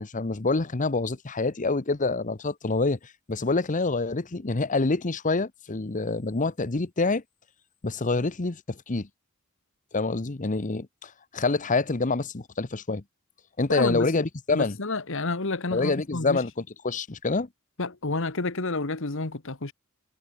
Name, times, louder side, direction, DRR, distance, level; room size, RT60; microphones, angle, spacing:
voice 1, 0.0-7.2 7.8-9.1 9.9-13.0 13.6-14.8 15.7-17.5, left 3 dB, 40° left, 0.9 m, -27 dB
voice 2, 13.7-14.2 14.5-16.4 17.8-19.7, left 3 dB, 65° left, 1.6 m, -29 dB
head